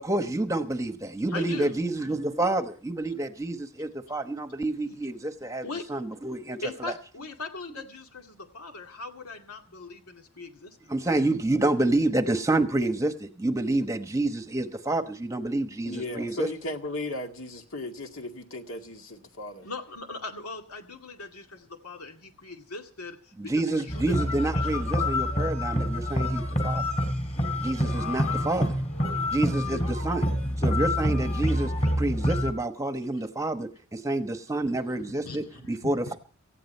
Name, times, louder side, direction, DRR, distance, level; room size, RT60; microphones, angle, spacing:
voice 1, 0.0-6.9 10.9-16.5 23.4-26.9 27.6-28.8 29.3-30.2 30.6-36.2, right 2 dB, 15° right, 8 dB, 1.1 m, -28 dB
voice 2, 1.3-1.7 4.9-5.0 5.6-6.0 6.6-11.0 19.6-24.2 24.5-24.7 27.9-28.8 29.7-29.9 34.6-36.2, left 3 dB, 85° left, 4 dB, 2.3 m, -40 dB
voice 3, 15.8-19.7, left 1 dB, 65° left, 4 dB, 2.1 m, -36 dB
sound 1, 23.9-32.5, left 1 dB, 30° left, 3.5 m, -27 dB
18.5 x 15.5 x 4.4 m, 0.40 s
head